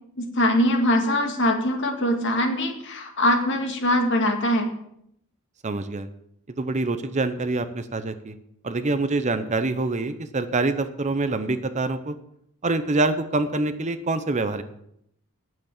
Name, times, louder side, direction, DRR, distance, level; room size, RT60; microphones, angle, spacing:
voice 1, 0.2-4.7, left 1 dB, 60° left, 3 dB, 2.0 m, -22 dB
voice 2, 5.6-6.1 6.6-8.3 8.6-12.1 12.6-14.6, right 2 dB, 35° right, 11 dB, 0.7 m, -25 dB
9.3 x 7.9 x 7.2 m, 0.73 s
head